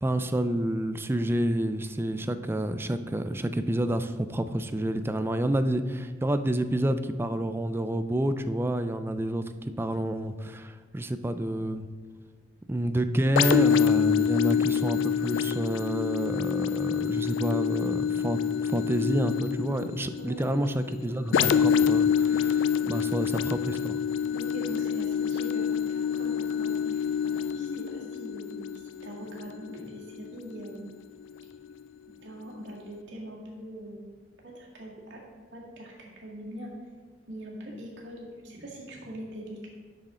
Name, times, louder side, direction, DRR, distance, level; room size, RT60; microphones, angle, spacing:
voice 1, 0.0-11.9 12.7-24.0, right 1 dB, 15° right, 10 dB, 0.4 m, -29 dB
sound 1, 13.4-30.9 31.4-31.6, left 7 dB, 90° left, 0.3 m, -27 dB
voice 2, 24.3-27.0 27.3-30.9 32.2-34.0 34.4-35.2 35.5-36.7 37.3-39.7, right 1 dB, 80° right, -3 dB, 2.1 m, -42 dB
10.0 x 6.3 x 3.7 m, 1.5 s
head